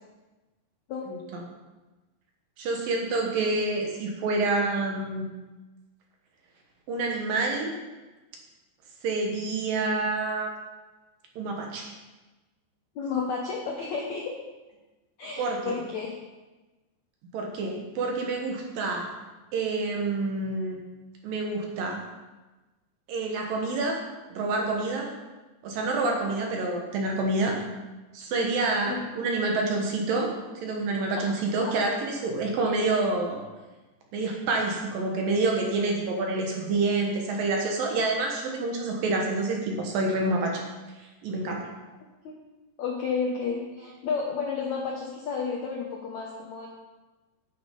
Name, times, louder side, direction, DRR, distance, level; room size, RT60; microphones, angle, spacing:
voice 1, 1.1-1.4 2.6-5.2 6.9-7.7 9.0-10.5 11.4-11.9 15.4-15.7 17.3-19.1 19.5-20.8 21.2-22.0 23.1-24.0 24.3-25.1 25.6-27.6 28.1-30.3 30.6-33.4 34.1-40.6 41.0-41.7, right 3 dB, 65° right, 1 dB, 2.7 m, -27 dB
voice 2, 12.9-14.3 15.2-16.2 28.8-29.1 31.2-31.3 31.6-31.7 42.2-42.4 42.8-46.7, left 5 dB, 70° left, -1 dB, 1.7 m, -31 dB
9.4 x 8.9 x 5.3 m, 1.2 s
omnidirectional pair, 4.8 m